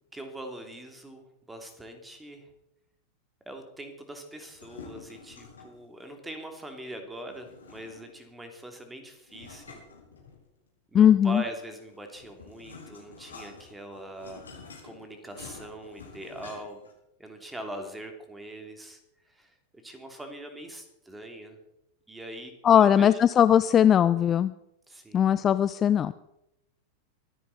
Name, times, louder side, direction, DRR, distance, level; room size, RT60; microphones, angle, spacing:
voice 1, 0.1-2.5 3.5-9.8 10.9-14.5 14.8-16.8 17.2-19.5 19.8-21.6 22.1-23.1 24.9-25.3, right 1 dB, 10° right, 5 dB, 2.8 m, -42 dB
sound 1, 4.4-5.8 7.3-8.3 9.3-10.7 11.8-16.9, left 4 dB, 70° left, 4.7 m, -48 dB
voice 2, 10.9-11.4 22.6-24.5 25.1-26.1, left 9 dB, 25° left, 14 dB, 0.4 m, -19 dB
23.5 x 10.0 x 4.1 m, 0.86 s
figure-of-eight pair, 90°, 0 cm